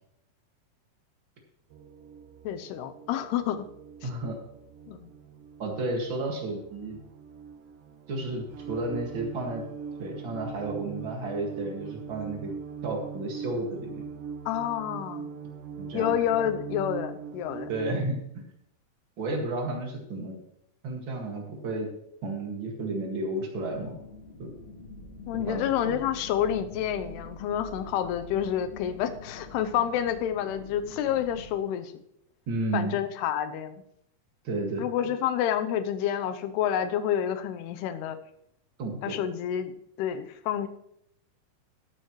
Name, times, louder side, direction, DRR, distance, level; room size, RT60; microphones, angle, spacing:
sound 1, 1.7-18.0, right 6 dB, 85° right, 2.0 m, -41 dB
voice 1, 2.4-3.6 4.0-4.1 4.9-5.1 14.5-15.3 15.9-17.7 25.3-31.9 32.7-33.8 34.8-38.2 39.0-40.7, left 10 dB, 80° left, 10 dB, 2.6 m, -29 dB
voice 2, 4.0-4.4 5.6-7.0 8.1-9.6 10.0-12.5 12.8-14.1 15.8-16.1 17.7-18.4 19.2-20.3 20.8-21.9 22.2-24.0 24.4-24.5 25.5-26.0 32.5-33.0 34.4-35.1 38.8-39.2, right 2 dB, 40° right, 0 dB, 1.8 m, -32 dB
sound 2, 23.5-31.5, left 2 dB, 60° left, 2.0 m, -45 dB
12.5 x 12.0 x 3.1 m, 0.76 s
omnidirectional pair, 5.0 m